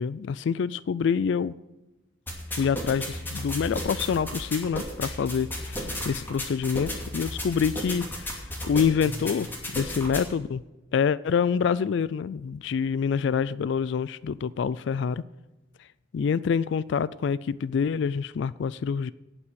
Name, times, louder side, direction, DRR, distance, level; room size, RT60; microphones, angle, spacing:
voice 1, 0.0-1.5 2.5-10.6 10.9-15.2 16.1-19.1, left 6 dB, 65° left, 18 dB, 0.3 m, -26 dB
sound 1, 2.3-10.2, left 1 dB, 10° left, 2.5 m, -34 dB
17.5 x 6.0 x 6.3 m, 1.0 s
head